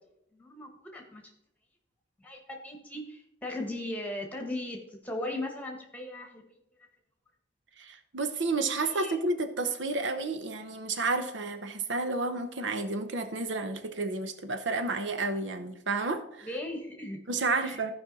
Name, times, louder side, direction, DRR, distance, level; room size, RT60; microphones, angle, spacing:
voice 1, 0.4-1.2 2.2-6.4 8.9-9.1 16.4-17.2 17.6-17.7, left 1 dB, 10° left, 2 dB, 1.5 m, -37 dB
voice 2, 7.8-16.5 17.3-17.9, right 3 dB, 80° right, 9 dB, 0.8 m, -31 dB
14.5 x 5.3 x 4.1 m, 0.77 s
head